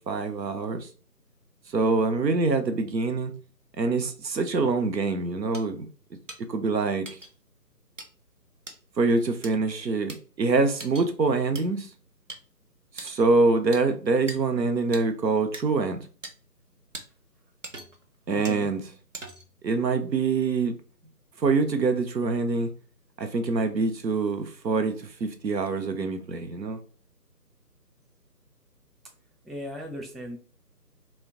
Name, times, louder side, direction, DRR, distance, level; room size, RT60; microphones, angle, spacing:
voice 1, 0.1-0.9 1.7-3.3 3.8-5.9 6.5-7.1 9.0-11.9 13.0-16.0 18.3-18.8 19.6-20.7 21.4-22.7 23.2-24.9 25.2-26.8, right 3 dB, 90° right, 0.7 m, -25 dB
sound 1, 5.5-5.6 6.3-6.4 7.1-7.3 8.0-8.1 8.7-8.8 9.4-9.5 10.1-10.2 10.8-11.1 11.6-11.7 12.3-12.4 13.0-13.2 13.7-13.8 14.3-14.4 14.9-15.0 15.5-15.6 16.2-16.3 16.9-17.1 17.6-18.0 18.5-18.6 19.1-19.5, right 2 dB, 50° right, 0.5 m, -40 dB
voice 2, 18.3-18.7 29.4-30.4, equal, ahead, 0.4 m, -37 dB
2.5 x 2.2 x 3.6 m
figure-of-eight pair, 160°, 49 cm